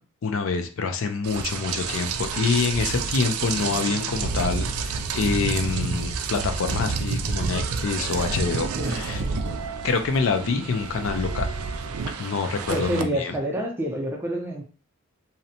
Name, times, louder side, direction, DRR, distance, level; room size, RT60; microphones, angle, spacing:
voice 1, 0.2-9.2 9.8-11.5 12.2-13.3, left 4 dB, 65° left, 0.4 m, -26 dB
Rain, 1.2-13.0, right 5 dB, 80° right, 0.4 m, -29 dB
voice 2, 12.7-14.6, right 1 dB, 10° right, 0.4 m, -28 dB
2.6 x 2.1 x 2.7 m
head